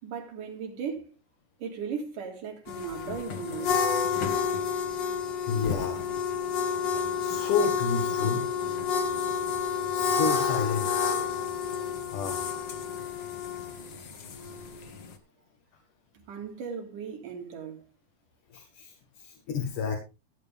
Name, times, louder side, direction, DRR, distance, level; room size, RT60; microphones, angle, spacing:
voice 1, 0.0-1.1 1.6-3.9 16.3-17.9, right 6 dB, 85° right, 3.8 m, -37 dB
sound 1, 2.7-15.1, left 6 dB, 50° left, 1.6 m, -30 dB
voice 2, 5.5-6.1 7.2-8.4 9.9-11.1 12.1-12.4 18.5-20.0, left 5 dB, 80° left, 3.4 m, -30 dB
15.5 x 9.3 x 3.4 m
omnidirectional pair, 3.6 m